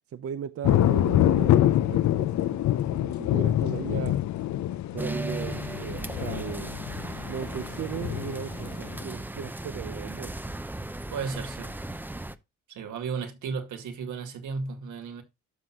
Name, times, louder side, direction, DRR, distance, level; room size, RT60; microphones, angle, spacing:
voice 1, 0.1-4.2 4.9-6.8 7.3-10.3, right 8 dB, 50° right, 0.7 m, -37 dB
sound 1, 0.6-9.0, left 13 dB, 65° left, 0.7 m, -25 dB
sound 2, 5.0-12.4, right 2 dB, 5° right, 0.6 m, -36 dB
voice 2, 11.1-11.8 12.7-15.2, right 5 dB, 80° right, 2.3 m, -34 dB
12.5 x 6.1 x 2.4 m
cardioid pair, 90°, 30 cm